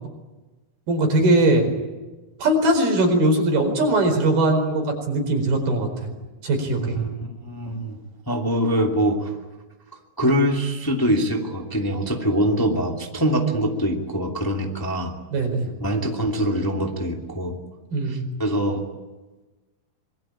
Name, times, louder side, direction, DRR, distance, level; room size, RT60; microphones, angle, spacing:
voice 1, 0.9-1.7 2.4-6.1 6.4-7.0 15.3-15.7 17.9-18.2, right 1 dB, 90° right, 4 dB, 6.6 m, -20 dB
voice 2, 6.7-7.1 7.4-8.0 8.3-9.3 10.2-15.1 15.8-17.6 18.0-18.8, equal, 5° left, 1 dB, 1.8 m, -23 dB
26.0 x 22.5 x 8.9 m, 1.2 s
omnidirectional pair, 4.2 m